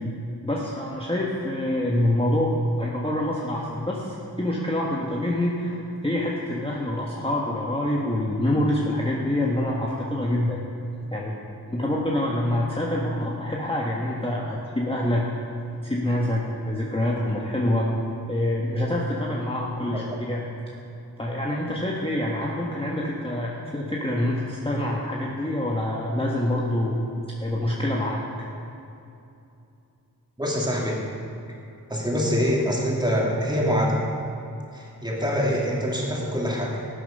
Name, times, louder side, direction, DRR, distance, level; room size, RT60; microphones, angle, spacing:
voice 1, 0.4-10.6 11.1-11.4 11.7-15.2 15.8-17.9 18.3-20.4 21.2-27.1 27.4-28.2, left 1 dB, 15° left, -4 dB, 1.4 m, -26 dB
voice 2, 30.4-31.0 31.9-34.1 34.7-36.8, equal, 10° right, -3 dB, 2.8 m, -25 dB
13.5 x 7.7 x 5.3 m, 2.7 s
cardioid pair, 45°, 39 cm